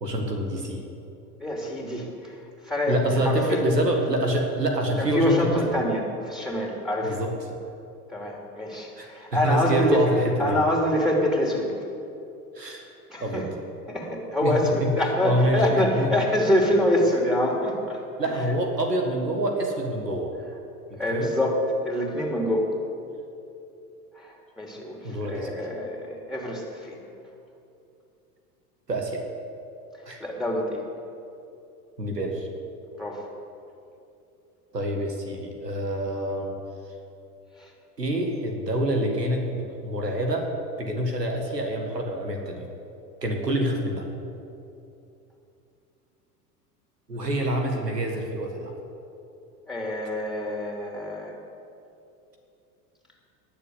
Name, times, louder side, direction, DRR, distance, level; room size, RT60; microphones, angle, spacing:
voice 1, 0.0-0.8 2.9-5.6 7.0-7.3 9.0-10.6 12.6-12.9 13.2-13.5 14.4-14.9 15.2-16.1 18.2-20.3 20.9-21.3 25.0-25.5 28.9-29.2 30.1-30.2 32.0-32.5 34.7-36.5 38.0-40.5 40.8-42.7 43.2-44.0 47.1-48.7, right 1 dB, 90° right, 2 dB, 1.9 m, -26 dB
voice 2, 1.4-3.7 5.0-7.2 8.1-11.7 13.1-13.5 13.9-18.0 20.9-21.6 21.8-22.7 24.1-27.0 30.2-30.8 33.0-33.3 37.6-37.7 49.7-51.3, left 1 dB, ahead, 0 dB, 2.8 m, -26 dB
20.0 x 6.9 x 8.0 m, 2.8 s
figure-of-eight pair, 80°, 47 cm